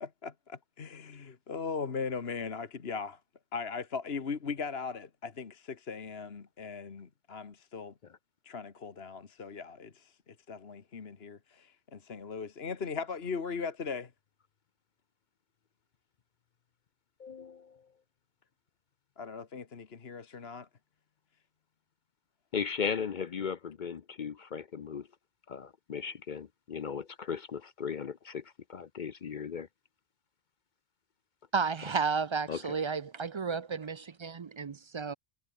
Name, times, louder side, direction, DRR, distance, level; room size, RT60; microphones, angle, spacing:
voice 1, 0.0-3.2 3.5-7.9 8.4-14.1 19.2-20.7, left 5 dB, 75° left, 1.7 m, -39 dB
voice 2, 17.2-17.8 22.5-25.1 25.5-28.4 28.7-29.7 32.5-32.6, left 6 dB, 50° left, 0.8 m, -37 dB
voice 3, 31.5-35.1, right 5 dB, 40° right, 0.4 m, -32 dB
omnidirectional pair, 1.1 m